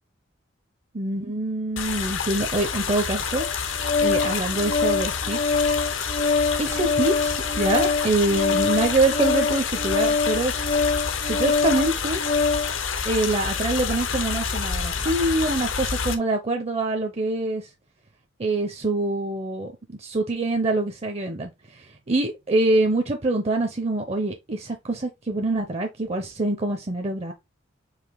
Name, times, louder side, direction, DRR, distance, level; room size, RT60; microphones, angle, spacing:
voice 1, 0.9-3.5 4.0-5.6 6.6-10.6 11.2-12.2 13.0-17.7 18.4-19.7 20.0-21.8 22.1-27.3, right 2 dB, 35° right, 0.6 m, -25 dB
sound 1, 1.8-16.2, left 6 dB, 75° left, 0.8 m, -28 dB
Organ, 3.3-12.7, left 4 dB, 40° left, 0.6 m, -25 dB
4.9 x 2.8 x 3.4 m
head